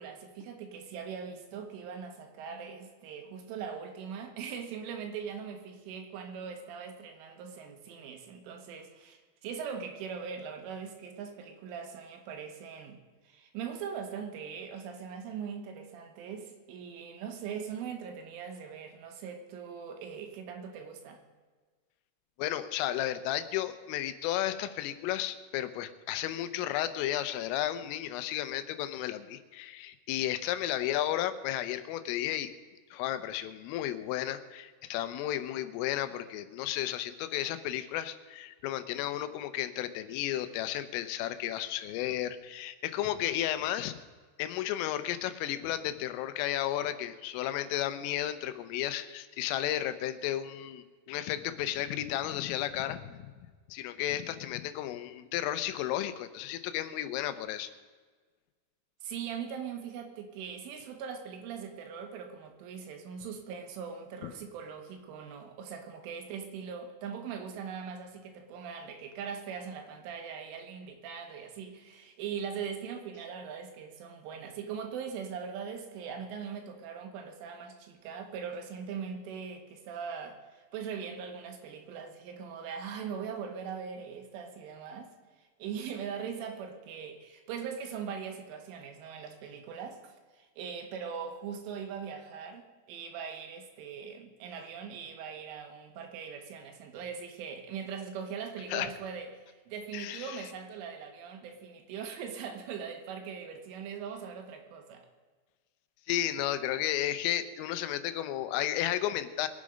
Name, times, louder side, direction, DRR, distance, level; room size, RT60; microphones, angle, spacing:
voice 1, 0.0-13.0 13.3-21.2 59.0-105.1, right 7 dB, 80° right, 5 dB, 4.0 m, -41 dB
voice 2, 22.4-32.5 32.9-44.0 44.4-53.3 53.7-57.7 64.2-64.3 98.7-98.9 99.9-100.4 106.1-109.5, left 12 dB, 85° left, 12 dB, 3.4 m, -33 dB
22.5 x 8.6 x 5.3 m, 1.4 s
omnidirectional pair, 5.7 m